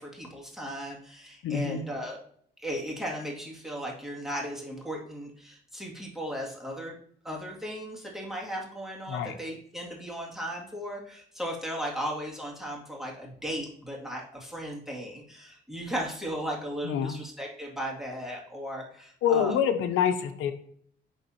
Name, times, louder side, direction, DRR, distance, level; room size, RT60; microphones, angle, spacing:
voice 1, 0.0-2.2 2.6-6.9 7.2-19.6, equal, ahead, -3 dB, 2.3 m, -36 dB
voice 2, 1.4-1.8 9.1-9.3 16.8-17.2 19.2-20.5, left 8 dB, 90° left, 8 dB, 0.7 m, -26 dB
10.5 x 3.6 x 2.8 m, 0.63 s
cardioid pair, 90°, 20 cm